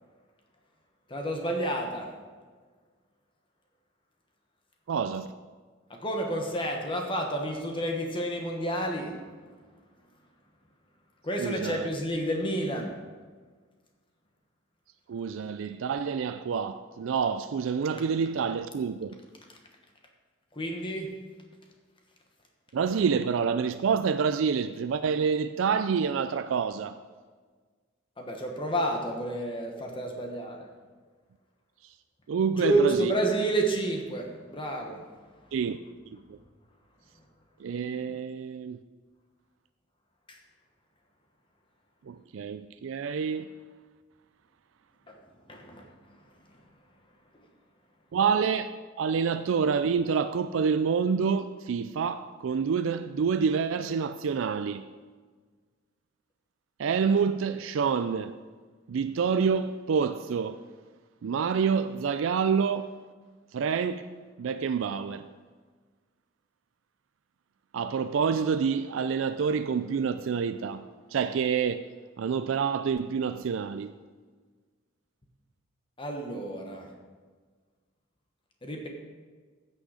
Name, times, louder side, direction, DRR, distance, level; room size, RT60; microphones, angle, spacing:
voice 1, 1.1-2.1 5.9-9.5 11.2-13.0 20.5-21.1 28.2-30.7 32.5-35.0 40.3-40.4 45.1-45.2 45.5-45.9 76.0-76.9 78.6-78.9, right 1 dB, 25° left, 1.2 m, -30 dB
voice 2, 4.9-5.3 11.4-11.9 15.1-19.2 22.7-27.0 31.8-31.9 32.3-33.1 35.5-35.8 36.1-36.4 37.6-38.8 42.1-43.5 48.1-54.9 56.8-58.4 58.9-60.6 61.2-62.9 63.5-64.1 64.4-65.3 67.7-71.9 72.2-73.9, right 6 dB, 85° right, 0.4 m, -27 dB
15.0 x 6.4 x 4.9 m
head